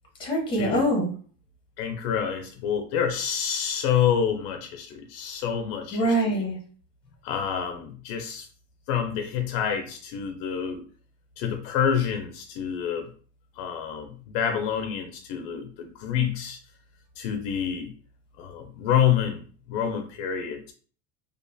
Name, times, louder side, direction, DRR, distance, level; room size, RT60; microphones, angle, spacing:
voice 1, 0.2-1.1 5.9-6.6, right 1 dB, 15° left, -1 dB, 0.7 m, -24 dB
voice 2, 1.8-6.0 7.2-8.4 8.9-10.8 11.4-13.1 13.6-16.6 17.2-17.9 18.4-20.7, left 8 dB, 70° left, 5 dB, 0.5 m, -27 dB
2.4 x 2.2 x 2.5 m, 0.42 s
cardioid pair, 170°, 31 cm